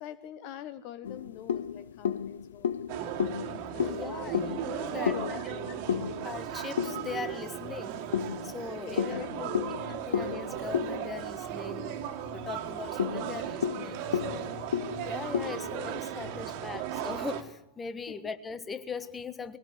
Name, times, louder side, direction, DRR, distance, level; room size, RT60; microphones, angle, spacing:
voice 1, 0.0-2.7 3.7-4.5 4.8-6.0 8.9-9.8 13.4-13.5 14.6-14.7 18.1-18.2, left 11 dB, 45° left, 1.1 m, -44 dB
sound 1, 1.0-7.5 8.1-12.0 12.3-12.4 12.8-16.4, left 8 dB, 65° left, 0.8 m, -33 dB
sound 2, 2.9-17.4, right 10 dB, 45° right, 2.2 m, -37 dB
voice 2, 3.8-5.4 6.2-8.0 8.4-9.5 9.9-12.0 12.3-14.7 15.0-19.6, left 5 dB, 15° left, 1.6 m, -40 dB
22.0 x 18.5 x 8.1 m
figure-of-eight pair, 90°, 0 cm